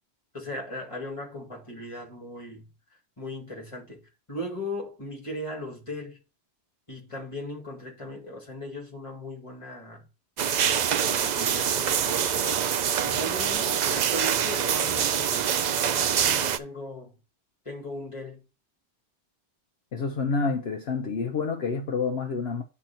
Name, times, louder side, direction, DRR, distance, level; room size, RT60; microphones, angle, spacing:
voice 1, 0.3-2.7 3.2-6.2 6.9-10.1 10.6-12.7 13.0-15.6 16.0-17.1 17.7-18.5, left 1 dB, 25° left, 2.2 m, -38 dB
sound 1, 10.4-16.6, right 8 dB, 55° right, 0.5 m, -25 dB
voice 2, 19.9-22.6, left 4 dB, 65° left, 1.0 m, -28 dB
9.0 x 4.2 x 4.3 m
omnidirectional pair, 1.1 m